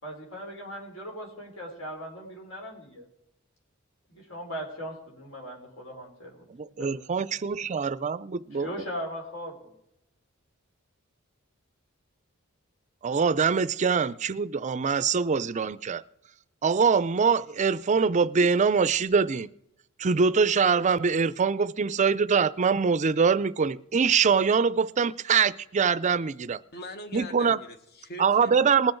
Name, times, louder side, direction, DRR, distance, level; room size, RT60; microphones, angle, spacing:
voice 1, 0.0-3.1 4.1-6.5 6.8-6.9 8.5-9.7, equal, 70° left, 4.7 m, -39 dB
voice 2, 6.6-8.7 13.0-16.0 16.6-19.5 20.0-26.6 27.1-27.6 28.2-28.9, right 5 dB, 35° right, 0.4 m, -23 dB
voice 3, 26.7-28.8, left 1 dB, 50° left, 1.4 m, -42 dB
20.0 x 7.7 x 4.5 m
head